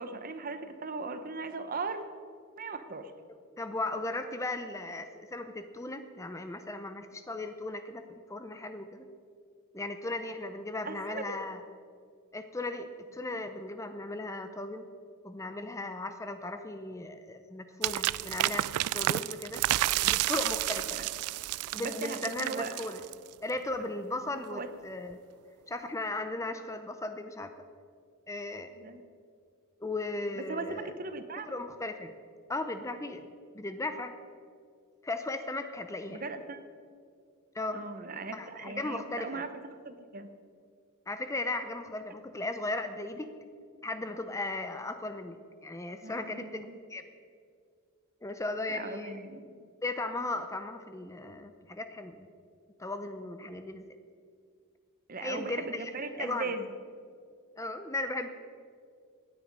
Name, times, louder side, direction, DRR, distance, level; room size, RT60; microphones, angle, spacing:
voice 1, 0.0-2.1 2.6-3.1 10.8-11.4 20.3-20.4 20.9-21.1 21.8-22.7 24.3-24.7 28.7-29.0 30.4-31.5 36.1-36.6 37.7-39.5 39.8-40.3 46.0-46.8 48.7-49.6 55.1-56.7, right 3 dB, 40° right, 10 dB, 0.9 m, -38 dB
voice 2, 3.3-8.0 8.3-9.1 9.7-11.6 12.3-14.8 15.2-18.7 18.9-19.6 20.0-21.0 21.7-23.0 23.4-25.2 25.7-27.5 28.3-28.7 29.8-30.9 31.5-32.1 32.5-33.3 33.5-34.1 35.0-36.2 37.5-37.8 38.3-39.4 41.1-43.3 43.8-47.0 48.2-49.2 49.8-52.3 52.8-53.9 55.2-56.5 57.6-58.3, left 2 dB, 15° left, 8 dB, 0.6 m, -36 dB
sound 1, 17.8-23.3, right 15 dB, 80° right, 0.3 m, -30 dB
17.0 x 10.0 x 5.3 m, 2.2 s
head